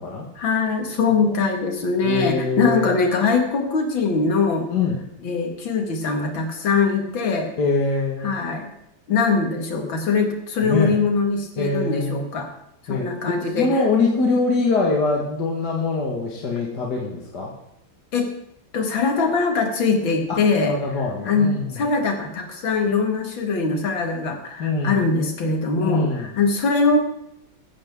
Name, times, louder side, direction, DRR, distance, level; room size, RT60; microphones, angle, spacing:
voice 1, 0.4-4.7 5.2-7.5 8.2-8.7 9.1-12.5 12.8-13.8 18.1-18.3 18.7-20.7 21.2-27.0, left 4 dB, 75° left, 4 dB, 2.6 m, -22 dB
voice 2, 2.0-2.9 4.7-5.0 7.6-8.3 10.6-11.0 11.6-12.3 12.9-13.1 13.6-17.5 20.3-21.7 24.6-25.0 25.8-26.3, left 3 dB, 55° left, -2 dB, 2.2 m, -23 dB
15.0 x 14.0 x 3.6 m, 0.78 s
omnidirectional pair, 2.2 m